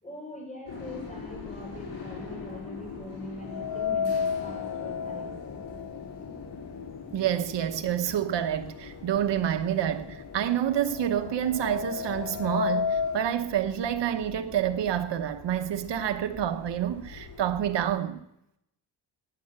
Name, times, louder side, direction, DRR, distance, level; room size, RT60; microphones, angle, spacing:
voice 1, 0.0-5.4, left 1 dB, 15° left, 6.0 m, -42 dB
sound 1, 0.6-18.0, left 5 dB, 80° left, 6.3 m, -43 dB
sound 2, 3.5-7.5 7.9-8.0 8.9-9.0 9.4-13.3, left 6 dB, 40° left, 0.9 m, -33 dB
voice 2, 7.1-18.2, right 10 dB, 80° right, 1.0 m, -28 dB
13.5 x 9.7 x 8.9 m
wide cardioid pair, 120°, 42 cm